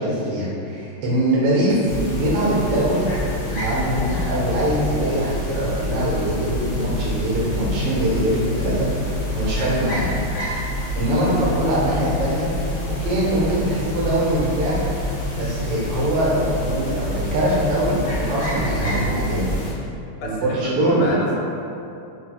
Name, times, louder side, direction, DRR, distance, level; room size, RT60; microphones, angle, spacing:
voice 1, 0.0-1.7 2.1-3.1 3.4-8.9 9.3-10.1 10.9-12.5 13.0-14.9 15.4-19.5 20.2-21.1, right 1 dB, 90° right, -6 dB, 1.8 m, -22 dB
sound 1, 1.8-19.7, left 1 dB, 60° left, 0.8 m, -27 dB
voice 2, 20.2-21.4, left 2 dB, 80° left, -2 dB, 1.4 m, -29 dB
4.3 x 3.1 x 2.2 m, 2.7 s
omnidirectional pair, 2.4 m